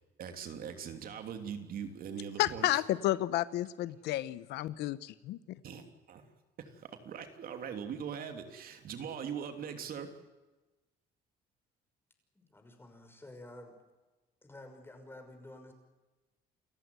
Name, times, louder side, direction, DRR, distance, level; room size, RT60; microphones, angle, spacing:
voice 1, 0.2-2.8 5.6-6.2 6.6-10.1, right 7 dB, 60° right, 3.0 m, -41 dB
voice 2, 2.4-5.6, left 14 dB, 85° left, 0.9 m, -32 dB
voice 3, 12.3-13.7 14.4-15.7, left 1 dB, 15° left, 6.0 m, -51 dB
29.0 x 14.5 x 9.5 m
cardioid pair, 110°, 17 cm